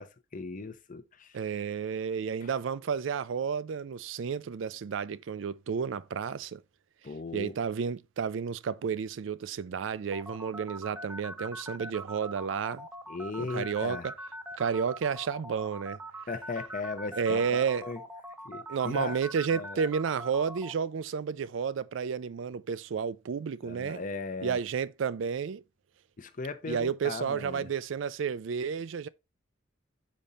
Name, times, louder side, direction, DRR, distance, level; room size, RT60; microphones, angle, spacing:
voice 1, 0.0-1.4 2.4-2.5 7.0-7.5 13.1-14.1 16.3-18.0 18.4-19.2 19.5-19.8 23.6-24.6 26.2-27.7, left 3 dB, 45° left, 0.7 m, -38 dB
voice 2, 1.3-6.6 7.3-12.9 13.4-14.0 14.6-16.0 17.2-17.8 18.7-24.0 24.4-25.6 26.7-29.1, right 6 dB, 70° right, 0.4 m, -31 dB
sound 1, 10.1-20.7, right 1 dB, 10° right, 0.6 m, -42 dB
5.2 x 5.1 x 4.1 m
head